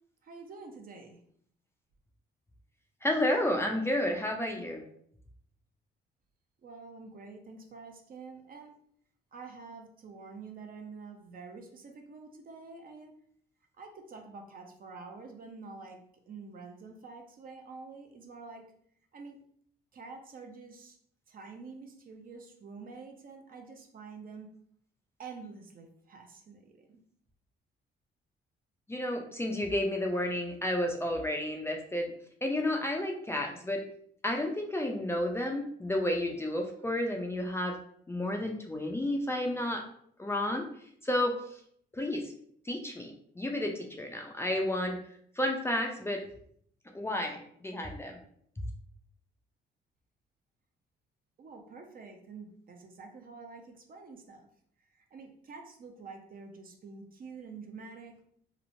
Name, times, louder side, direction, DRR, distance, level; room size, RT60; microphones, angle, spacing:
voice 1, 0.2-1.2 6.6-8.7 9.3-13.1 13.8-16.0 16.3-18.6 19.1-19.4 19.9-21.0 21.3-24.5 25.2-27.0 51.4-54.5 55.0-58.2, right 4 dB, 45° right, 3 dB, 0.5 m, -47 dB
voice 2, 3.0-4.8 28.9-32.1 32.4-33.8 34.2-37.8 38.1-39.8 40.2-40.6 41.0-41.3 41.9-42.2 42.7-45.0 45.4-46.2 46.9-48.2, left 1 dB, 15° left, 2 dB, 0.4 m, -31 dB
2.9 x 2.0 x 2.6 m, 0.64 s
cardioid pair, 90°, 20 cm